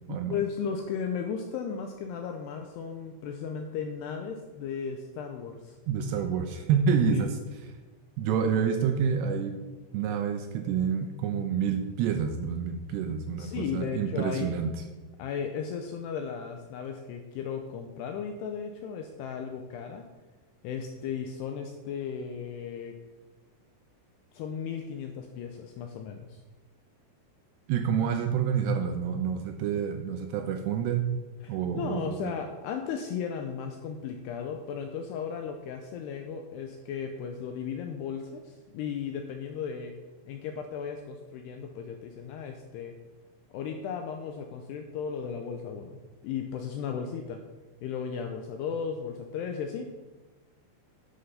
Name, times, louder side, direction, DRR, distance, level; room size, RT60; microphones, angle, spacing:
voice 1, 0.1-5.8 7.1-7.2 13.4-14.6 15.2-20.1 20.6-22.9 24.3-26.4 31.4-39.9 40.3-42.9 43.5-46.0 46.2-47.4 47.8-49.9, left 7 dB, 85° left, 4 dB, 2.4 m, -35 dB
voice 2, 5.9-7.4 8.2-9.6 9.9-14.7 27.7-31.1 31.5-32.3, right 7 dB, 80° right, 5 dB, 2.5 m, -28 dB
11.0 x 6.9 x 5.6 m, 1.2 s
omnidirectional pair, 5.5 m